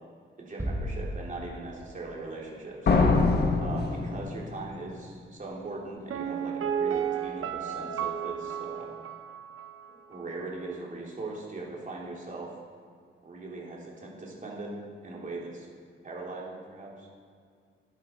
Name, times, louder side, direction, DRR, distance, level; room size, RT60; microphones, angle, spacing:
voice 1, 0.4-2.8 3.6-8.9 9.9-12.5 13.2-14.7 15.0-15.7 16.0-17.1, right 3 dB, 40° right, -3 dB, 3.1 m, -40 dB
sound 1, 0.6-2.2, equal, 10° right, 1.4 m, -35 dB
sound 2, 2.9-4.7, left 3 dB, 50° left, 1.4 m, -24 dB
Piano, 6.1-9.9 10.1-10.2, right 8 dB, 85° right, 0.8 m, -33 dB
14.5 x 10.5 x 4.5 m, 2.2 s
wide cardioid pair, 115°, 21 cm